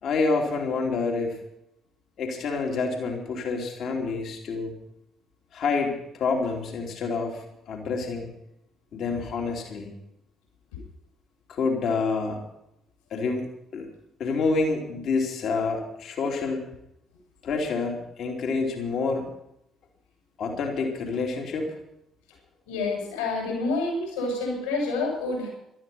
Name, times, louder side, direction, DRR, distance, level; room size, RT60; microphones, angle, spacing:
voice 1, 0.0-1.4 2.2-4.7 5.5-8.3 8.9-9.9 11.5-12.4 13.1-13.5 13.7-13.9 14.2-16.6 17.4-19.3 20.4-21.7, left 4 dB, 50° left, 2 dB, 3.1 m, -28 dB
voice 2, 22.7-25.5, left 3 dB, 70° left, 0 dB, 7.0 m, -28 dB
17.5 x 13.0 x 5.5 m, 0.79 s
figure-of-eight pair, 45°, 0 cm